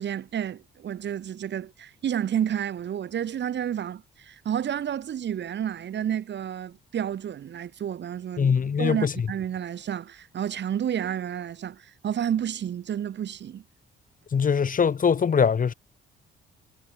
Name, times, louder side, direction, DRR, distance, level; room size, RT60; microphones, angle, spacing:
voice 1, 0.0-13.6, right 9 dB, 65° right, 6.3 m, -30 dB
voice 2, 8.4-9.1 14.3-15.7, left 6 dB, 45° left, 2.8 m, -22 dB
cardioid pair, 90°, 20 cm